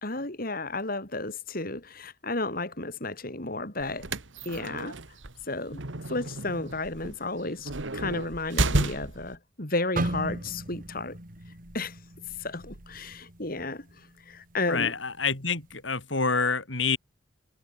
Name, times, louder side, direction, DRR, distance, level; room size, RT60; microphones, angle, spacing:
voice 1, 0.0-4.1 4.4-5.0 5.5-11.2 11.7-12.0 12.4-14.9, left 2 dB, 50° left, 4.5 m, -33 dB
sound 1, 3.8-9.4, right 2 dB, 80° right, 1.9 m, -32 dB
sound 2, 10.0-14.0 14.3-14.6 15.3-15.6, right 1 dB, 45° right, 3.8 m, -36 dB
voice 2, 14.7-17.0, left 4 dB, 75° left, 6.2 m, -27 dB
head